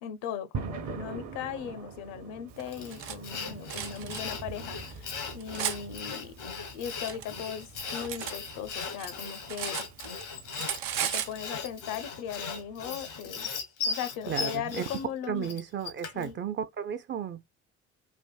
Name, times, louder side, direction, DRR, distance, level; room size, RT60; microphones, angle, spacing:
voice 1, 0.0-6.3 6.7-9.9 11.1-13.5 13.8-15.5 16.1-16.4, left 8 dB, 65° left, 0.6 m, -38 dB
sound 1, 0.5-13.5, right 5 dB, 55° right, 0.9 m, -45 dB
Cutlery silverware, 2.6-3.2 3.7-4.2 4.9-5.8 6.7-8.4 8.7-10.2 10.5-11.4, right 10 dB, 85° right, 0.5 m, -35 dB
Sawing, 2.7-16.3, left 5 dB, 85° left, 1.2 m, -38 dB
voice 2, 14.3-14.8 15.3-17.5, right 8 dB, 35° right, 0.4 m, -34 dB
3.4 x 2.5 x 2.2 m
hypercardioid pair, 60°, 35 cm